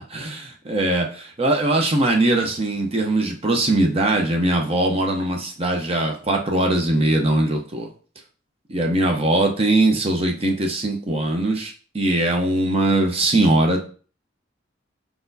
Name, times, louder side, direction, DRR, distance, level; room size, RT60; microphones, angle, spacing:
voice 1, 0.1-7.9 8.7-13.8, right 2 dB, 30° right, 2 dB, 0.7 m, -21 dB
4.5 x 4.1 x 2.7 m, 0.39 s
head